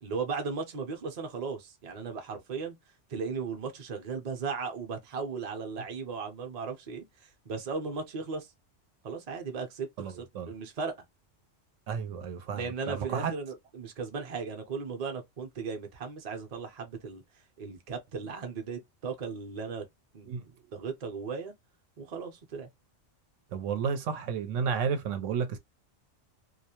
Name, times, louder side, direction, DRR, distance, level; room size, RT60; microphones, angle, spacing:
voice 1, 0.0-2.8 3.1-7.0 7.4-8.5 9.0-10.9 12.5-17.2 17.6-19.8 20.1-20.4 20.7-21.5 22.0-22.7, right 5 dB, 40° right, 0.6 m, -36 dB
voice 2, 10.0-10.5 11.9-13.3 20.3-20.4 23.5-25.6, right 6 dB, 85° right, 0.9 m, -32 dB
2.3 x 2.0 x 2.8 m
omnidirectional pair, 1.3 m